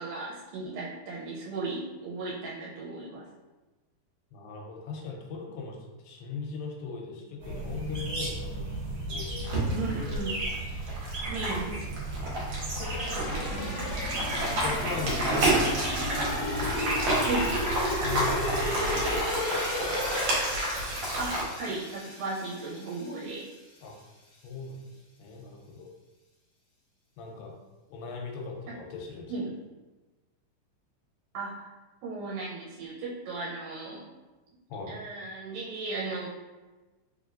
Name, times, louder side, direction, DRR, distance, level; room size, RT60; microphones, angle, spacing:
voice 1, 0.0-3.2 9.7-10.5 11.3-11.9 13.5-13.9 17.3-17.5 21.2-23.5 29.3-29.5 31.3-31.6 32.0-34.0 34.9-36.3, right 3 dB, 80° right, -4 dB, 2.3 m, -36 dB
voice 2, 4.3-5.8 6.0-8.6 8.9-9.5 11.2-11.9 14.6-15.6 16.2-17.2 18.0-20.0 23.8-24.0 24.4-25.9 27.2-27.5 27.9-29.3 34.7-35.0, left 4 dB, 80° left, 0 dB, 2.4 m, -39 dB
sound 1, 7.4-18.9, right 1 dB, 45° right, 1.9 m, -35 dB
sound 2, 9.4-21.4, right 1 dB, 65° right, 2.1 m, -30 dB
sound 3, 12.8-23.5 23.9-24.0, left 1 dB, 65° left, 1.0 m, -34 dB
5.0 x 3.1 x 2.5 m, 1.2 s
omnidirectional pair, 4.1 m